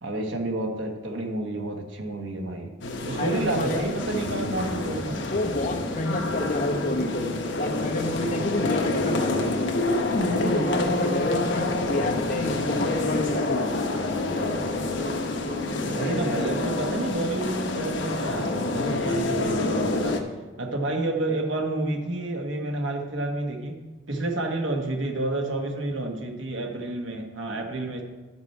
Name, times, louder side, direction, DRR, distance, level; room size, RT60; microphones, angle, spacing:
voice 1, 0.0-2.8 3.0-5.4 15.9-20.2 20.6-23.8 24.1-28.0, right 2 dB, 85° right, 2 dB, 1.3 m, -30 dB
sound 1, 2.8-20.2, left 2 dB, 75° left, 1.0 m, -27 dB
voice 2, 3.1-3.8 5.3-7.2 7.6-9.4 10.0-13.7, left 2 dB, 45° left, 1 dB, 1.1 m, -29 dB
11.0 x 6.0 x 4.5 m, 1.2 s
head